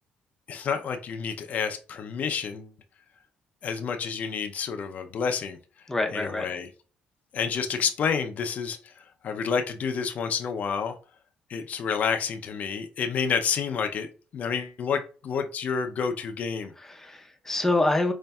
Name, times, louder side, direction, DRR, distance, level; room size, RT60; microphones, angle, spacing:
voice 1, 0.5-2.7 3.6-5.6 6.1-6.7 7.3-11.0 11.5-16.7, left 6 dB, 55° left, 6 dB, 0.5 m, -29 dB
voice 2, 5.9-6.5 16.8-18.1, left 2 dB, 15° left, 4 dB, 0.6 m, -26 dB
5.3 x 2.5 x 2.2 m, 0.37 s
cardioid pair, 100°, 3 cm